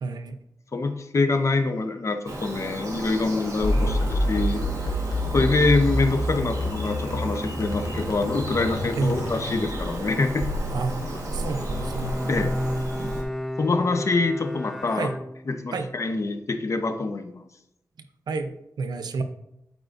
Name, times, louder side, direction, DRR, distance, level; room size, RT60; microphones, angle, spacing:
voice 1, 0.0-0.3 3.7-4.0 9.0-9.2 10.7-11.0 11.3-11.6 14.9-15.1 15.7-15.9 18.3-18.5 18.8-19.2, right 4 dB, 85° right, 8 dB, 0.7 m, -28 dB
voice 2, 0.7-4.6 5.3-10.5 12.3-12.5 13.6-15.1 15.4-17.4, left 3 dB, 45° left, 7 dB, 0.8 m, -25 dB
Bird vocalization bird call bird song, 2.3-13.2, right 1 dB, 55° right, 1.8 m, -33 dB
sound 1, 3.6-10.0, equal, 70° left, 1.3 m, -28 dB
Bowed string instrument, 11.4-15.8, equal, ahead, 0.5 m, -32 dB
12.0 x 4.8 x 2.6 m, 0.82 s
wide cardioid pair, 90°, 7 cm